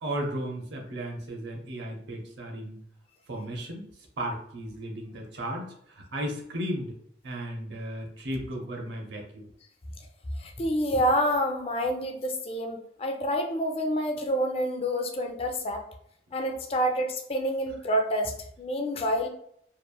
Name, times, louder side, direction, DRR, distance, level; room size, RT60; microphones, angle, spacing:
voice 1, 0.0-2.8 3.3-3.9 4.2-6.9 7.2-9.5, right 1 dB, 90° right, 1 dB, 0.6 m, -35 dB
voice 2, 10.4-15.8 16.3-19.3, equal, 35° left, 3 dB, 0.3 m, -28 dB
2.9 x 2.5 x 2.2 m, 0.69 s
head